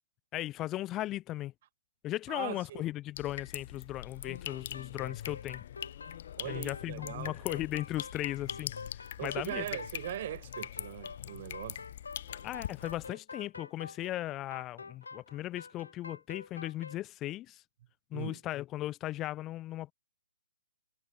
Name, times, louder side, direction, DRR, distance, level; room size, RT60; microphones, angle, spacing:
voice 1, 0.3-1.5 2.0-5.6 6.4-8.7 9.2-9.7 12.4-17.6 18.1-19.9, left 15 dB, 20° left, 1.1 m, -37 dB
voice 2, 2.3-2.8 6.4-7.3 9.2-11.8 18.1-18.4, right 13 dB, 45° right, 0.4 m, -40 dB
sound 1, 3.2-13.1, left 11 dB, 50° left, 0.5 m, -43 dB
sound 2, 4.2-17.0, left 4 dB, 90° left, 1.5 m, -47 dB
hypercardioid pair, 145°, 0 cm